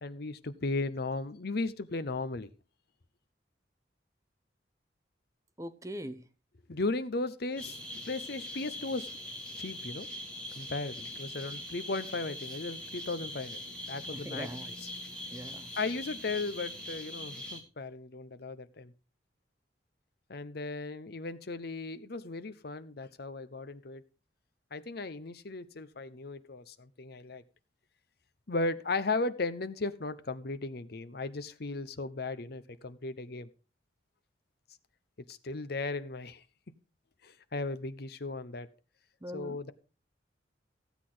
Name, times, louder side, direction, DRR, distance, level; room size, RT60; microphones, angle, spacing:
voice 1, 0.0-2.5 6.7-7.8 8.1-9.1 9.6-10.1 10.5-13.6 13.9-14.5 14.8-14.9 15.8-18.9 20.3-24.0 24.7-27.4 28.5-33.5 35.3-36.4 37.2-38.7 39.3-39.7, left 3 dB, 55° left, 0.8 m, -36 dB
voice 2, 5.6-6.2 14.1-14.7 15.3-15.7 39.2-39.6, equal, 15° right, 0.8 m, -41 dB
sound 1, 7.6-17.6, left 1 dB, 5° left, 2.6 m, -42 dB
15.0 x 8.2 x 3.9 m
head